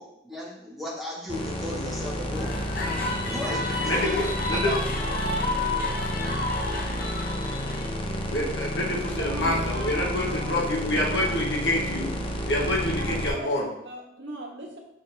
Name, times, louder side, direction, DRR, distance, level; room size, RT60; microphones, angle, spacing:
voice 1, 0.0-2.6 3.3-4.3 4.5-4.8, left 1 dB, ahead, -7 dB, 1.6 m, -36 dB
sound 1, 1.3-13.3, equal, 30° left, 0.7 m, -31 dB
sound 2, 2.3-7.9, left 2 dB, 50° left, 1.0 m, -31 dB
voice 2, 3.8-4.7 8.3-12.1 12.5-13.7, left 1 dB, 70° left, -3 dB, 1.4 m, -27 dB
voice 3, 9.1-10.6 11.2-11.4 13.0-14.8, right 1 dB, 70° right, 0 dB, 1.4 m, -39 dB
7.0 x 5.1 x 3.5 m, 0.84 s
head